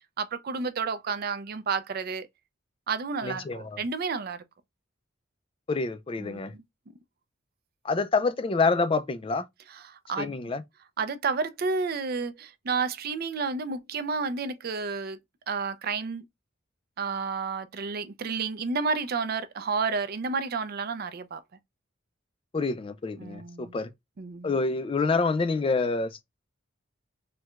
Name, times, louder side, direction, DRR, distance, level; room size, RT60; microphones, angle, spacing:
voice 1, 0.2-2.3 2.9-4.4 6.2-6.6 9.7-10.4 11.0-15.2 15.5-16.2 17.0-21.4 23.2-23.7 24.2-24.5, right 4 dB, 50° right, 0.4 m, -31 dB
voice 2, 3.2-3.8 5.7-6.5 7.8-9.4 10.2-10.6 22.5-23.9 24.4-26.2, left 4 dB, 25° left, 0.3 m, -27 dB
4.5 x 2.2 x 2.3 m
head